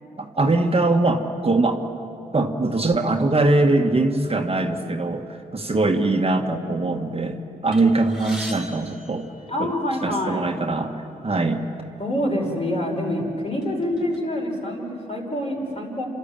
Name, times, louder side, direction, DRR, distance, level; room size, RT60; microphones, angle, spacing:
voice 1, 0.2-1.8 2.3-9.3 9.6-9.7 10.0-10.9 11.2-11.6, right 2 dB, 40° right, 4 dB, 1.6 m, -22 dB
sound 1, 7.7-10.1 10.9-11.0 11.3-11.5 12.4-12.5 13.0-14.2, equal, ahead, 4.7 m, -41 dB
voice 2, 9.5-10.5 12.0-16.0, left 1 dB, 40° left, -1 dB, 5.8 m, -26 dB
27.0 x 13.0 x 9.0 m, 2.7 s
supercardioid pair, 45°, 16 cm